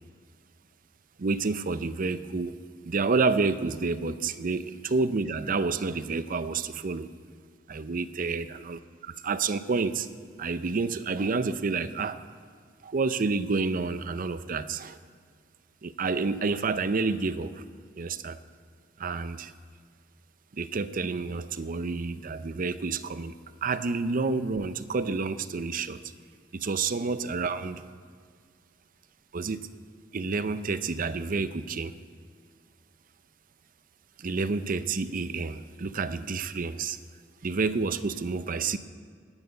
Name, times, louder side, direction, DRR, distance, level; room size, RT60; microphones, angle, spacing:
voice 1, 1.2-2.6 2.8-7.1 7.7-8.8 9.0-10.1 10.4-12.2 12.8-15.0 15.8-17.6 18.0-18.4 19.0-19.5 20.5-23.3 23.6-26.0 26.5-27.8 29.3-29.7 30.1-31.9 34.2-37.0 37.4-38.8, right 4 dB, 45° right, 13 dB, 0.5 m, -29 dB
10.5 x 9.0 x 9.2 m, 2.1 s
head